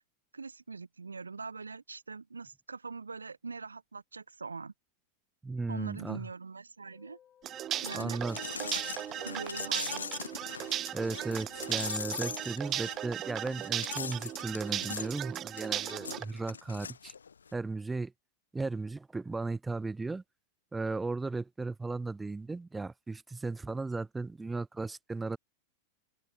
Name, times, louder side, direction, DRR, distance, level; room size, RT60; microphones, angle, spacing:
voice 1, 0.3-4.7 5.7-7.2 7.8-8.2 8.5-8.7 9.2-10.1, right 4 dB, 75° right, 3.7 m, -43 dB
voice 2, 5.4-6.3 7.9-8.4 10.6-10.7 10.9-17.1 17.5-18.1 18.5-20.2 20.7-25.4, right 3 dB, 10° right, 0.6 m, -36 dB
sound 1, 6.8-12.4, left 10 dB, 25° left, 3.8 m, -60 dB
sound 2, 7.4-16.2, right 12 dB, 30° right, 1.1 m, -37 dB
sound 3, 7.8-17.5, left 6 dB, 70° left, 0.4 m, -41 dB
figure-of-eight pair, 90°, 0 cm